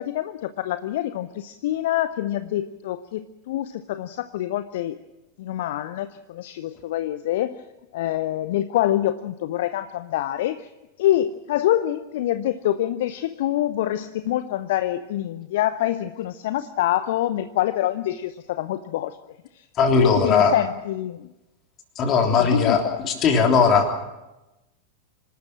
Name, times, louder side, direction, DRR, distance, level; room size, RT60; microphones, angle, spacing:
voice 1, 0.0-5.0 5.4-7.6 7.9-10.7 11.0-19.2 19.5-19.7 20.0-21.3 22.3-23.0, left 13 dB, 55° left, 13 dB, 0.7 m, -26 dB
voice 2, 19.8-20.5 22.0-23.9, left 5 dB, 30° left, 3 dB, 3.5 m, -19 dB
26.0 x 12.5 x 8.7 m, 1.0 s
figure-of-eight pair, 90°, 0 cm